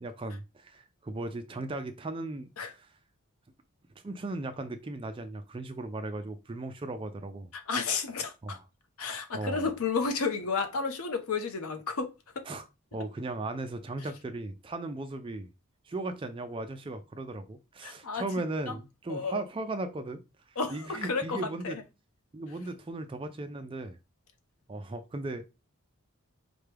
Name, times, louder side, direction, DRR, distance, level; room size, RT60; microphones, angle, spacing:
voice 1, 0.0-2.9 4.0-7.5 8.4-8.6 9.3-9.7 12.5-12.7 12.9-15.5 15.9-20.2 20.7-21.8 22.3-24.0 24.7-25.4, right 2 dB, 25° right, 0.3 m, -37 dB
voice 2, 7.7-8.6 9.0-12.1 12.4-12.5 17.8-18.2 18.7-18.8 19.1-19.4 20.6-21.7, left 4 dB, 80° left, 0.7 m, -32 dB
4.5 x 2.2 x 3.3 m
head